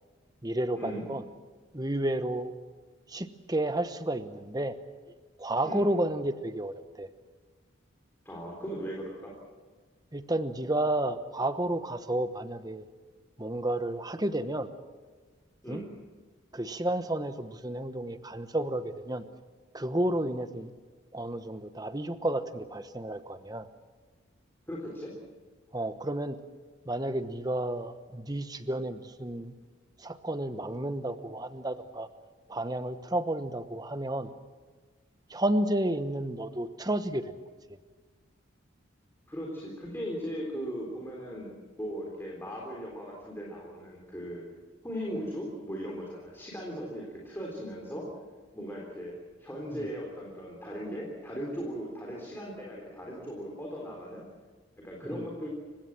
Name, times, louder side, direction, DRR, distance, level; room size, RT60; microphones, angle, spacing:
voice 1, 0.4-1.2 1.7-2.5 3.1-4.8 5.4-7.1 10.1-12.8 13.4-14.7 15.7-15.8 16.5-19.2 19.7-20.7 21.1-23.7 25.7-26.4 26.9-29.5 30.0-32.1 32.5-34.3 35.3-37.2 55.1-55.2, right 1 dB, 20° right, 10 dB, 1.0 m, -31 dB
voice 2, 8.3-9.4 15.6-15.9 24.7-25.1 39.3-44.4 44.8-48.1 48.5-54.2 54.8-55.5, equal, 10° left, -2 dB, 3.7 m, -38 dB
30.0 x 16.5 x 7.6 m, 1.4 s
head